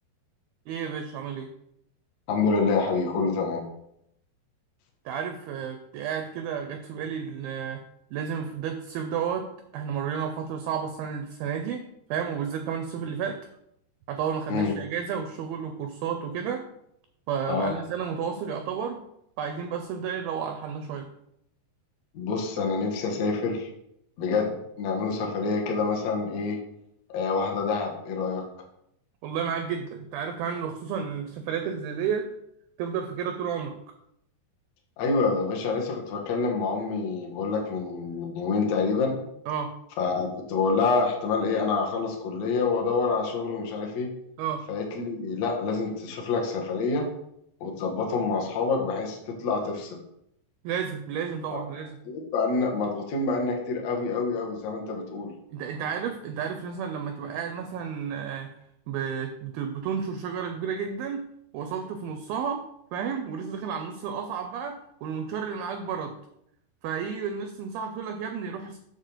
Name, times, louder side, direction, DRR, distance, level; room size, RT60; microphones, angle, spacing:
voice 1, 0.7-1.5 5.1-7.8 8.1-9.5 9.7-13.4 14.1-16.7 17.3-19.0 19.4-21.1 29.2-32.3 32.8-33.8 39.5-39.7 44.4-44.6 50.6-52.0 55.5-58.5 58.9-61.2 61.5-62.6 62.9-66.2 66.8-68.8, right 7 dB, 85° right, 6 dB, 2.1 m, -32 dB
voice 2, 2.3-3.6 14.5-14.7 17.5-17.7 22.1-23.7 24.2-26.6 27.1-28.5 35.0-39.2 40.0-44.1 44.7-47.1 47.6-50.0 51.5-51.6 52.1-55.3, left 4 dB, 65° left, 0 dB, 1.7 m, -27 dB
8.2 x 3.5 x 6.7 m, 0.76 s
omnidirectional pair, 5.0 m